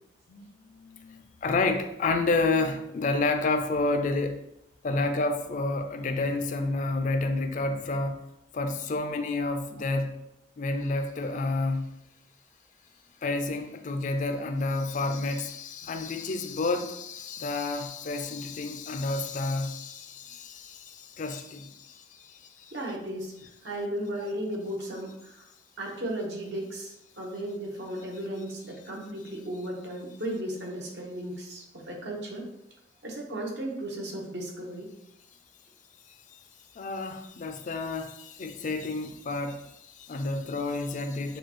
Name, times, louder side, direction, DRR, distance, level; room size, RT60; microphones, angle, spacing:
voice 1, 0.3-4.4 4.8-8.2 8.5-10.2 10.6-11.9 13.2-22.7 36.7-41.4, left 3 dB, 45° left, 7 dB, 0.4 m, -30 dB
voice 2, 22.7-23.3 23.6-25.3 25.8-32.4 33.0-34.9, right 1 dB, 75° right, -1 dB, 1.1 m, -35 dB
6.5 x 2.3 x 3.0 m, 0.83 s
head